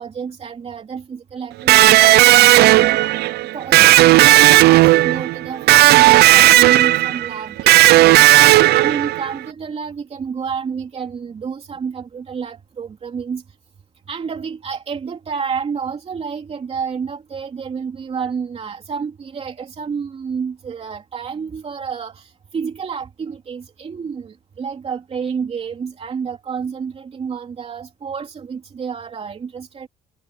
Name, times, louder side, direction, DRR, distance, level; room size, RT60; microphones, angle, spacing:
voice 1, 0.0-2.5 3.5-13.4 14.1-29.9, right 6 dB, 35° right, 3.0 m, -30 dB
Electric guitar, 1.7-9.4, right 16 dB, 75° right, 0.6 m, -12 dB
cardioid pair, 110°, 17 cm